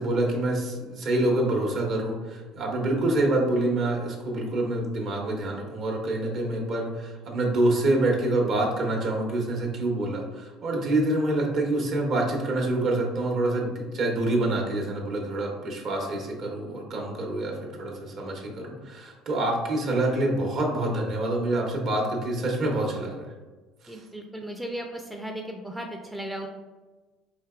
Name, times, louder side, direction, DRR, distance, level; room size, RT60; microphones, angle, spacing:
voice 1, 0.0-23.3 23.8-24.0, right 2 dB, 55° right, 0 dB, 0.9 m, -26 dB
voice 2, 23.9-26.5, right 1 dB, 5° right, 1 dB, 0.4 m, -36 dB
4.4 x 2.9 x 2.3 m, 1.2 s
supercardioid pair, 80°, 0 cm